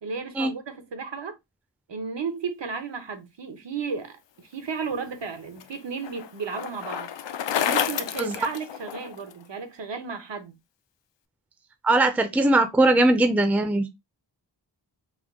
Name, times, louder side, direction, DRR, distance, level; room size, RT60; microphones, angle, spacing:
voice 1, 0.0-1.4 1.9-7.1 7.6-10.5, right 5 dB, 70° right, 0.8 m, -34 dB
Bicycle, 4.9-9.3, left 9 dB, 70° left, 0.5 m, -30 dB
voice 2, 11.8-13.9, right 2 dB, 5° right, 0.4 m, -20 dB
3.6 x 2.2 x 3.5 m
wide cardioid pair, 90°, 45 cm